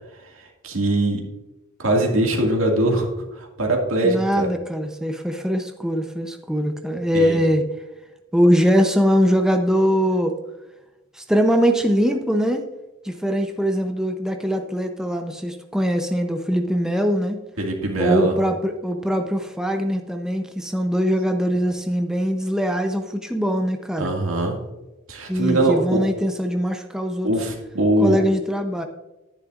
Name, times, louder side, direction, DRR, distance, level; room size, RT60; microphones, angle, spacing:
voice 1, 0.3-1.2 1.8-4.5 7.1-7.4 17.6-18.3 24.0-24.6 25.1-26.0 27.2-28.2, right 1 dB, 85° right, 1 dB, 2.0 m, -22 dB
voice 2, 4.0-7.6 8.3-10.4 11.1-12.7 13.0-17.4 18.0-24.1 25.3-27.3 28.0-28.8, equal, 5° right, 4 dB, 0.6 m, -22 dB
11.0 x 9.9 x 2.4 m, 1.0 s
head